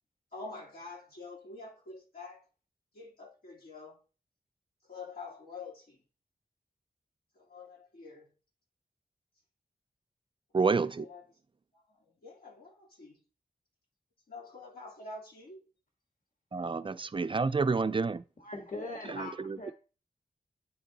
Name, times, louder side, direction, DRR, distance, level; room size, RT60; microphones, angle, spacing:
voice 1, 0.3-2.5 2.9-4.0 4.8-6.0 7.3-8.3 10.5-11.3 11.7-13.2 14.3-15.6, left 3 dB, 90° left, 3.1 m, -47 dB
voice 2, 10.5-11.0 16.5-18.2 19.1-19.6, right 4 dB, 35° right, 0.3 m, -29 dB
voice 3, 18.4-19.7, left 2 dB, 60° left, 1.4 m, -41 dB
9.2 x 3.6 x 3.9 m
wide cardioid pair, 95°, 16 cm